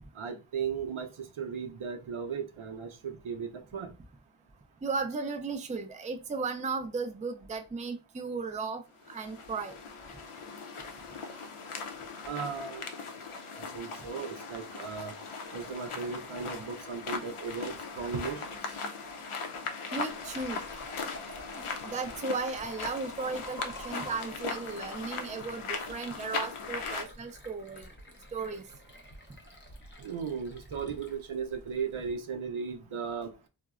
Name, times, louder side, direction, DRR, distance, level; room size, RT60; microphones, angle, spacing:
voice 1, 0.1-3.9 12.3-12.9 13.5-15.2 15.5-18.4 30.0-33.3, right 6 dB, 75° right, 0.6 m, -36 dB
voice 2, 4.8-8.8 9.1-9.7 19.9-20.6 21.5-27.9 28.3-28.6, right 4 dB, 15° right, 0.4 m, -35 dB
sound 1, 9.0-27.0, left 4 dB, 80° left, 0.6 m, -39 dB
Liquid, 20.1-32.1, left 1 dB, 25° left, 0.6 m, -49 dB
3.6 x 2.0 x 2.4 m
wide cardioid pair, 55°, 49 cm